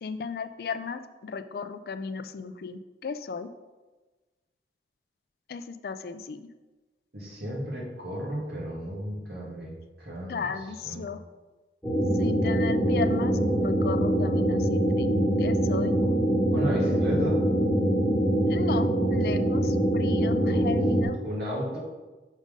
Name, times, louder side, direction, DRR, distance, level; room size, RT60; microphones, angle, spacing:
voice 1, 0.0-3.5 5.5-6.5 10.3-11.2 12.2-15.1 15.4-16.0 18.5-21.2, left 5 dB, 55° left, 10 dB, 0.3 m, -35 dB
voice 2, 7.1-10.5 10.8-11.1 16.5-17.4 20.5-20.7 21.2-21.8, equal, 70° right, -5 dB, 2.1 m, -33 dB
sound 1, 11.8-21.0, right 1 dB, 5° left, 1.3 m, -24 dB
6.2 x 3.8 x 5.2 m, 1.2 s
head